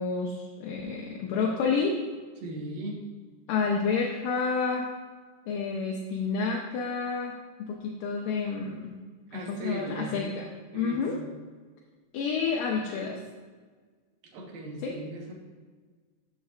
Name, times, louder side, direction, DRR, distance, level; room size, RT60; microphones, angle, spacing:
voice 1, 0.0-2.0 3.5-4.9 5.5-7.4 7.7-8.9 9.3-10.5 10.7-11.2 12.1-13.2 14.8-14.9, left 5 dB, 80° left, -1 dB, 2.5 m, -29 dB
voice 2, 2.4-3.0 9.3-10.1 10.7-11.3 14.3-15.3, right 1 dB, 90° right, -1 dB, 3.2 m, -38 dB
12.5 x 7.4 x 2.5 m, 1.5 s
omnidirectional pair, 3.9 m